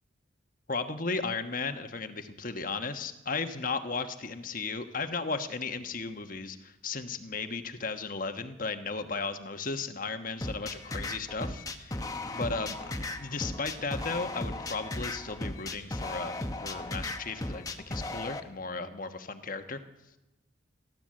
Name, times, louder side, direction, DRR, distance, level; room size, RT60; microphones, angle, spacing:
voice 1, 0.7-12.1 12.3-16.4 16.6-19.8, left 4 dB, 40° left, 7 dB, 1.3 m, -35 dB
sound 1, 10.4-18.4, left 2 dB, 15° left, 1.0 m, -36 dB
29.5 x 12.5 x 7.6 m, 1.0 s
head